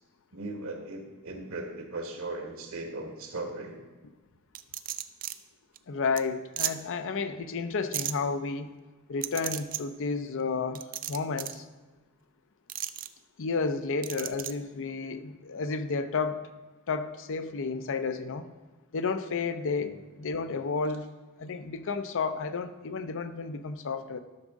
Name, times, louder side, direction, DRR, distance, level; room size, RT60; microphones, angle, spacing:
voice 1, 0.3-3.8 19.8-19.9, right 2 dB, 65° right, 4 dB, 1.3 m, -38 dB
sound 1, 4.5-5.3 5.8-5.9 6.2-6.3 6.6-6.7 7.9-8.1 9.2-9.8 10.7-11.6 12.7-13.1 14.0-14.5, right 12 dB, 40° right, 0.4 m, -33 dB
voice 2, 5.9-8.7 9.1-11.7 13.4-16.5 16.9-18.5 18.9-21.1 21.4-24.2, left 4 dB, 60° left, 10 dB, 0.6 m, -32 dB
12.0 x 6.2 x 3.6 m, 1.3 s
head